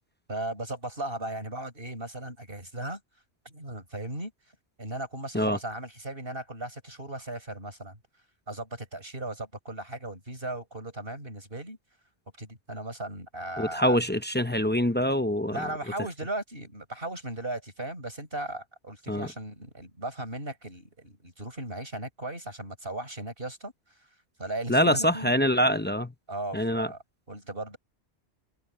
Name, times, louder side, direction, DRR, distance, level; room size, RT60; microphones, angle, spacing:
voice 1, 0.3-3.0 3.4-4.3 4.8-8.0 8.5-11.8 12.4-14.0 15.5-23.7 24.4-25.4 26.3-27.8, right 1 dB, 55° right, 8.2 m, -37 dB
voice 2, 13.6-15.6 19.1-19.3 24.7-26.1 26.5-26.9, equal, 15° left, 0.5 m, -24 dB
omnidirectional pair, 1.2 m